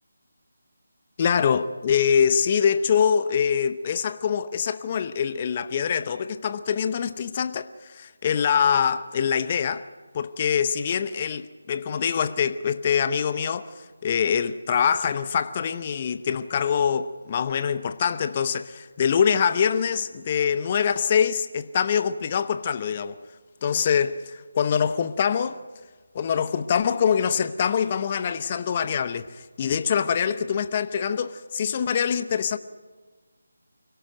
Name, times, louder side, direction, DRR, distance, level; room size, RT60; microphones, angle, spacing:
voice 1, 1.2-9.9 10.1-23.2 23.6-25.6 26.1-32.6, left 7 dB, 30° left, 0.8 m, -24 dB
25.0 x 17.5 x 7.8 m
figure-of-eight pair, 160°, 0 cm